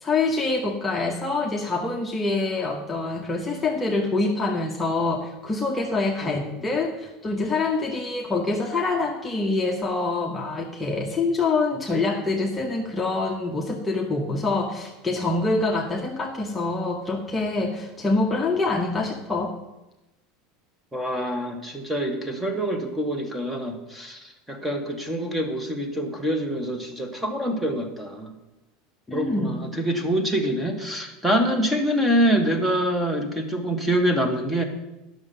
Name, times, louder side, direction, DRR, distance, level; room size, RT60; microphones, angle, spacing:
voice 1, 0.0-19.5 29.1-29.6, left 3 dB, 10° left, -1 dB, 0.9 m, -25 dB
voice 2, 20.9-28.3 29.1-34.6, equal, 5° right, 5 dB, 1.3 m, -25 dB
9.5 x 6.4 x 6.8 m, 0.99 s
supercardioid pair, 135°, 0 cm